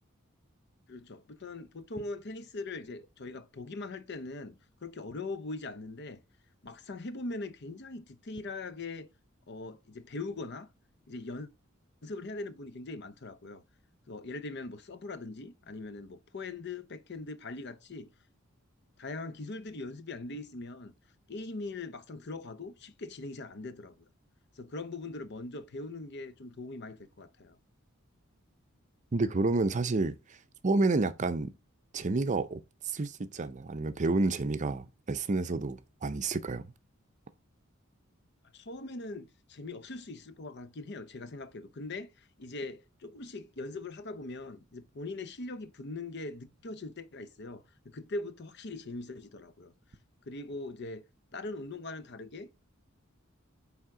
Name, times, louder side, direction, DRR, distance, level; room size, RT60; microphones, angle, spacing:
voice 1, 0.9-6.2 6.6-9.1 9.5-10.7 11.1-11.5 12.0-13.6 14.1-18.1 19.0-20.9 21.3-23.9 24.6-27.6 38.5-49.7 50.3-51.0 51.3-52.5, left 2 dB, 55° left, 0.7 m, -41 dB
voice 2, 29.1-30.1 30.6-31.5 31.9-32.6 32.9-36.6, right 3 dB, 35° right, 0.5 m, -29 dB
9.1 x 3.6 x 3.7 m
head